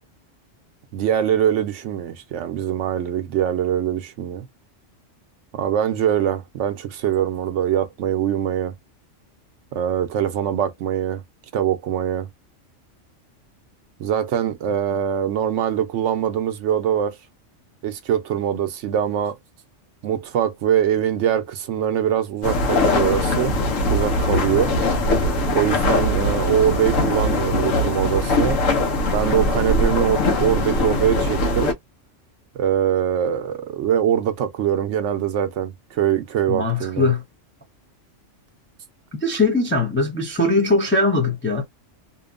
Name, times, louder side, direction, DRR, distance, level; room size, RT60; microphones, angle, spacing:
voice 1, 0.9-4.5 5.5-8.7 9.7-11.2 11.5-12.3 14.0-17.2 17.8-19.4 20.0-23.6 23.9-24.8 25.5-28.6 29.1-31.7 32.5-37.1, right 10 dB, 70° right, 0.9 m, -23 dB
sound 1, 22.4-31.7, left 2 dB, 85° left, 1.0 m, -21 dB
voice 2, 36.5-37.2 39.2-41.6, left 2 dB, 15° left, 0.4 m, -20 dB
2.8 x 2.2 x 2.4 m
omnidirectional pair, 1.3 m